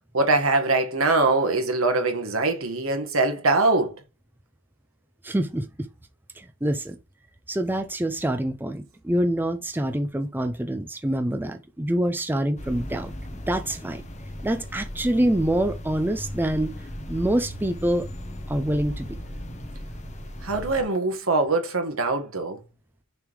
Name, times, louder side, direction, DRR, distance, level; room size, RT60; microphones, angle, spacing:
voice 1, 0.1-4.0 20.4-22.6, right 3 dB, 75° right, 1.5 m, -23 dB
voice 2, 5.2-5.9 6.4-7.0 7.5-13.1 13.5-14.0 14.4-16.7 17.1-18.1 18.5-19.2, right 1 dB, 10° right, 0.5 m, -26 dB
sound 1, 12.6-20.8, equal, 35° left, 1.2 m, -37 dB
6.7 x 3.5 x 4.8 m
head